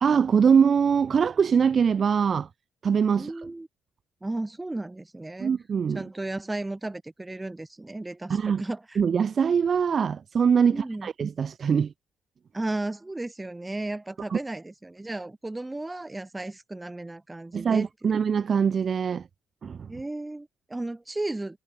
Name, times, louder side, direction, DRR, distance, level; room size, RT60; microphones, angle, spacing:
voice 1, 0.0-2.5 2.8-3.3 5.4-6.0 8.3-8.6 9.0-11.9 14.3-14.4 17.5-19.2 19.6-19.9, right 6 dB, 45° right, 1.5 m, -23 dB
voice 2, 3.2-3.7 4.2-5.5 5.9-9.0 10.7-11.1 12.5-17.9 19.9-21.6, right 2 dB, 15° right, 6.9 m, -34 dB
cardioid pair, 90°, 0 cm